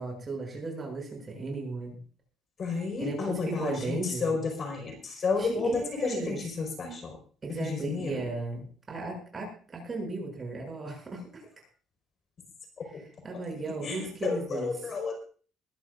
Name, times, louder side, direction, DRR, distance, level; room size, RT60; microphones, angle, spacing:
voice 1, 0.0-2.0 3.0-4.4 5.4-6.4 7.4-11.5 13.2-14.7, right 3 dB, 25° right, 1 dB, 7.6 m, -35 dB
voice 2, 2.6-7.2 7.5-8.3 12.8-13.0 13.8-15.2, left 4 dB, 40° left, 3 dB, 4.9 m, -32 dB
22.0 x 14.5 x 2.6 m, 0.41 s
cardioid pair, 135°, 0 cm